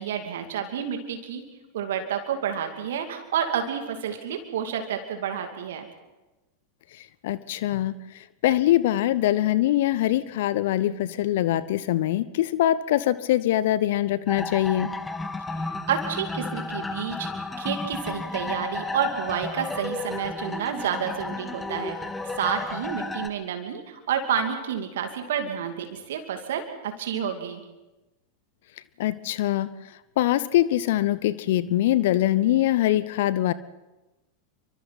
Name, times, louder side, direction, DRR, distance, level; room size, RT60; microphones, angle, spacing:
voice 1, 0.0-1.4 1.7-5.9 15.5-17.3 17.6-22.0 22.3-27.6, right 8 dB, 65° right, 5 dB, 2.5 m, -29 dB
voice 2, 7.2-7.9 8.4-14.9 29.0-29.7 30.2-33.5, left 13 dB, 60° left, 17 dB, 0.7 m, -23 dB
sound 1, 14.3-23.3, left 3 dB, 15° left, 1.5 m, -33 dB
28.5 x 24.5 x 4.1 m, 1.1 s
figure-of-eight pair, 90°, 0 cm